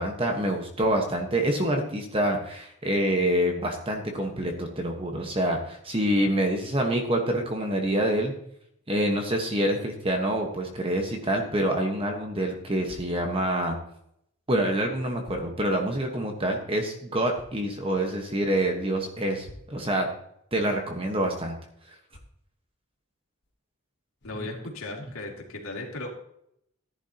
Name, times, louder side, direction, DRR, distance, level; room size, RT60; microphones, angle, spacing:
voice 1, 0.0-8.3 8.9-13.8 14.5-20.1 20.5-21.6 24.3-24.5, right 1 dB, 25° right, 3 dB, 1.2 m, -26 dB
sound 1, 12.8-13.1 14.5-14.6 15.2-15.5 17.3-17.6 19.4-19.8 22.1-22.4 23.4-23.5 24.2-24.4, left 1 dB, 50° left, 1.4 m, -48 dB
voice 2, 24.2-26.1, left 2 dB, 75° left, -1 dB, 2.7 m, -36 dB
14.0 x 11.0 x 2.9 m, 0.73 s
head